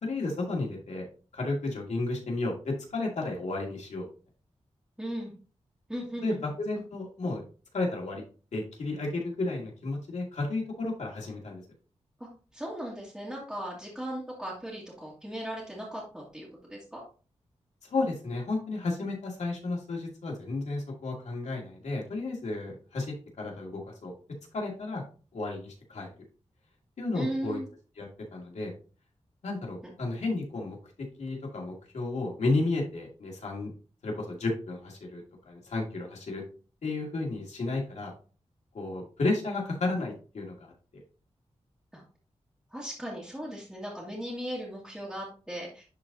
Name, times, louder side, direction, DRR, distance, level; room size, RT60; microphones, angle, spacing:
voice 1, 0.0-1.0 1.3-4.1 6.2-7.4 7.7-8.2 8.5-11.6 17.8-24.1 24.5-25.0 25.3-26.1 27.0-27.6 28.0-28.7 29.4-30.8 31.2-33.7 34.0-36.4 36.8-38.1 38.7-40.7, left 2 dB, 80° left, -1 dB, 2.2 m, -32 dB
voice 2, 5.0-5.3 5.9-6.4 12.2-17.0 27.1-27.7 29.8-29.9 41.9-42.0 42.7-45.8, equal, 5° right, -7 dB, 2.0 m, -37 dB
11.0 x 3.9 x 2.7 m, 0.36 s
wide cardioid pair, 135°, 12 cm